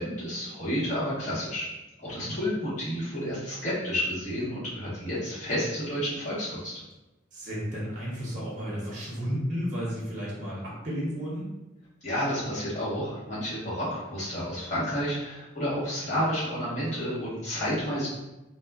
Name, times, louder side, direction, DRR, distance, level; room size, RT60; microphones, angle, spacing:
voice 1, 0.0-1.7 2.0-6.8 12.0-18.1, equal, 40° left, -10 dB, 1.1 m, -30 dB
voice 2, 7.3-11.5, equal, 40° right, -5 dB, 0.7 m, -33 dB
2.4 x 2.3 x 2.2 m, 0.99 s
head